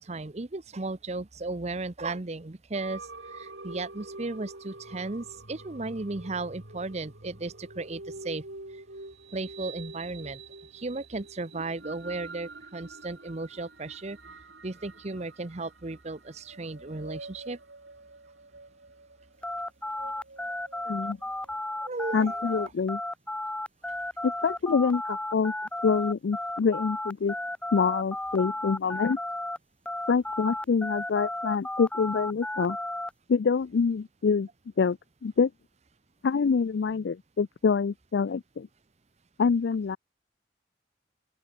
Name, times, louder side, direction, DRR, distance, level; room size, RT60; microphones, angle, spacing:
voice 1, 0.0-3.0 3.3-8.4 9.3-10.4 10.7-14.2 14.6-17.6 21.8-22.6, right 3 dB, 40° right, 0.9 m, -35 dB
sound 1, 2.7-22.3, right 3 dB, 80° right, 4.1 m, -46 dB
sound 2, 19.4-29.6 29.9-33.1, left 1 dB, 5° left, 1.5 m, -34 dB
voice 2, 20.9-21.2 22.1-23.0 24.2-25.5 25.8-27.3 27.7-29.2 30.1-32.8 33.3-34.5 34.8-35.0 35.2-35.5 36.2-38.7 39.4-40.0, left 5 dB, 75° left, 0.4 m, -26 dB
open air
head